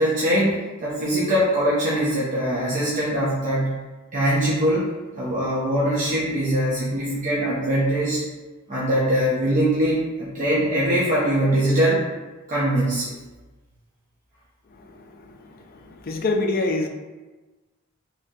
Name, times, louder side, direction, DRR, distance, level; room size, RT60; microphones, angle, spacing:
voice 1, 0.0-3.8 4.1-8.2 8.7-12.0 12.5-13.1, right 1 dB, 40° right, -7 dB, 0.6 m, -22 dB
voice 2, 14.8-16.9, left 2 dB, 45° left, 4 dB, 0.4 m, -27 dB
3.6 x 3.0 x 2.7 m, 1.2 s
head